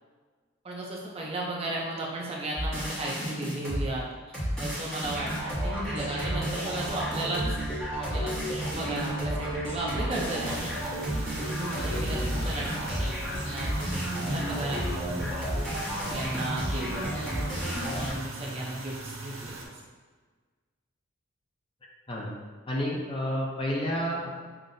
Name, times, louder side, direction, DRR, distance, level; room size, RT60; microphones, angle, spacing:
voice 1, 0.6-7.6 7.9-10.6 11.3-15.5 16.0-17.4 17.7-19.5, right 1 dB, 25° right, -3 dB, 0.5 m, -35 dB
sound 1, 2.6-3.8 4.3-18.1, equal, 5° left, 1.3 m, -31 dB
sound 2, 10.4-19.6, right 3 dB, 70° right, 0.7 m, -41 dB
voice 2, 11.7-12.6 22.1-22.3 22.7-24.4, equal, 25° left, -3 dB, 0.5 m, -31 dB
5.7 x 2.6 x 2.6 m, 1.4 s
head